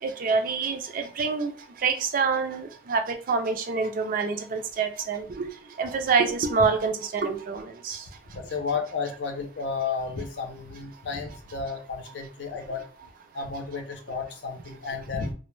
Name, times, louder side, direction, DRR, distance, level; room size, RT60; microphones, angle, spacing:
voice 1, 0.0-1.5 1.8-5.5 5.8-8.0, right 5 dB, 50° right, 7 dB, 0.4 m, -26 dB
voice 2, 8.3-12.8 13.3-15.3, left 5 dB, 80° left, 4 dB, 0.6 m, -32 dB
2.1 x 2.0 x 3.1 m, 0.38 s
head